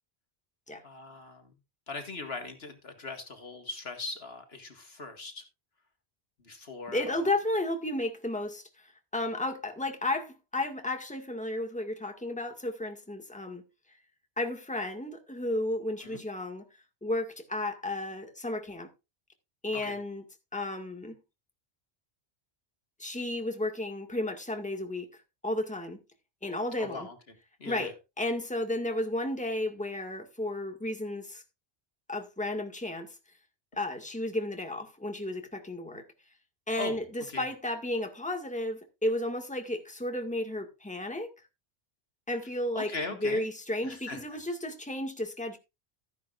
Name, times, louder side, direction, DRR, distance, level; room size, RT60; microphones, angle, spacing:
voice 1, 0.8-1.5 1.9-5.4 6.4-7.2 16.0-16.2 19.7-19.9 26.8-27.2 27.6-27.9 36.8-37.0 37.3-37.5 42.7-43.5 43.8-44.4, left 3 dB, 65° left, 2.1 m, -40 dB
voice 2, 6.9-13.6 14.4-16.7 17.0-18.9 19.6-20.2 20.5-21.2 23.0-26.0 26.4-27.1 27.6-31.4 32.1-33.2 33.8-36.1 36.7-41.3 42.3-42.9 43.2-45.6, left 1 dB, 5° left, 1.9 m, -33 dB
14.0 x 10.5 x 2.5 m
omnidirectional pair, 1.1 m